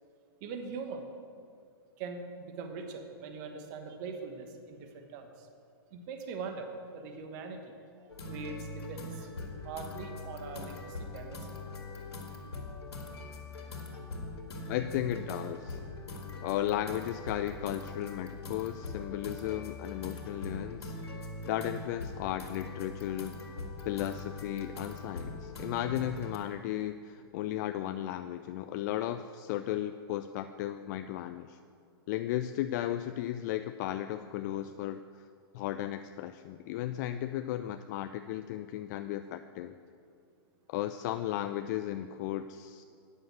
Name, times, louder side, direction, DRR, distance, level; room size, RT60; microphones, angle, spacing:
voice 1, 0.4-1.0 2.0-5.5 5.9-9.3 9.6-11.5, right 4 dB, 45° right, 5 dB, 1.1 m, -42 dB
sound 1, 8.1-26.4, left 2 dB, 90° left, 2.1 m, -42 dB
voice 2, 14.7-15.8 16.4-21.0 21.4-23.4 23.8-31.6 32.1-35.0 35.5-39.7 40.7-42.8, left 12 dB, 45° left, 9 dB, 0.4 m, -35 dB
9.5 x 6.4 x 7.9 m, 2.3 s
hypercardioid pair, 130°, 13 cm